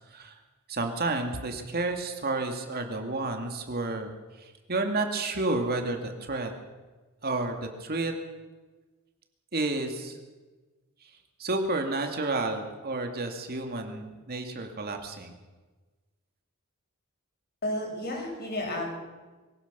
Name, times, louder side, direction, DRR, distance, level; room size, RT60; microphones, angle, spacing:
voice 1, 0.1-0.4 0.7-4.1 4.4-6.5 7.2-8.1 9.5-10.2 11.0-11.1 11.4-15.3, right 2 dB, 45° right, 4 dB, 2.4 m, -31 dB
voice 2, 17.6-18.9, left 1 dB, 45° left, 1 dB, 6.5 m, -32 dB
23.0 x 17.0 x 6.9 m, 1.3 s
head